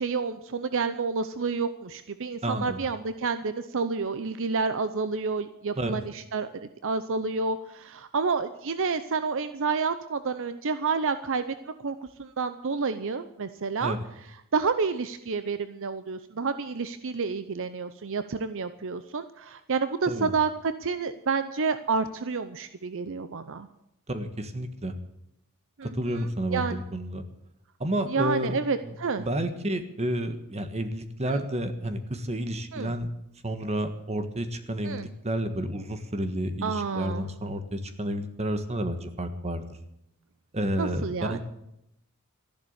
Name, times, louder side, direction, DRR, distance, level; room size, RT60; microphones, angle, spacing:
voice 1, 0.0-6.5 6.8-13.9 14.5-23.7 25.8-25.9 26.5-26.8 28.1-29.3 31.3-31.4 32.7-32.9 34.8-35.1 36.6-37.3 40.8-41.4, right 4 dB, 60° right, 12 dB, 0.7 m, -29 dB
voice 2, 2.4-2.8 5.7-6.0 13.8-14.0 20.1-20.3 24.1-24.9 25.8-27.2 27.8-33.1 33.4-39.7 40.5-41.4, right 1 dB, 30° right, 8 dB, 1.5 m, -30 dB
13.5 x 11.5 x 8.2 m, 0.82 s
head